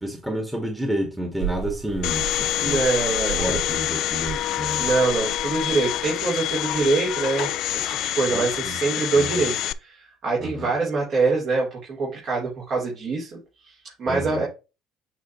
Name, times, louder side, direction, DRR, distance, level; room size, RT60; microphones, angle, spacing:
voice 1, 0.0-2.8 3.3-4.9 8.3-8.8 9.2-9.4 10.4-10.7 14.1-14.4, right 1 dB, 10° right, 3 dB, 1.8 m, -30 dB
sound 1, 1.4-8.7, right 7 dB, 70° right, 3.0 m, -37 dB
Domestic sounds home sounds, 2.0-9.7, left 13 dB, 65° left, 0.4 m, -26 dB
voice 2, 2.6-3.6 4.8-14.5, right 3 dB, 50° right, -4 dB, 3.7 m, -25 dB
8.9 x 3.8 x 3.1 m, 0.28 s
supercardioid pair, 75°, 0 cm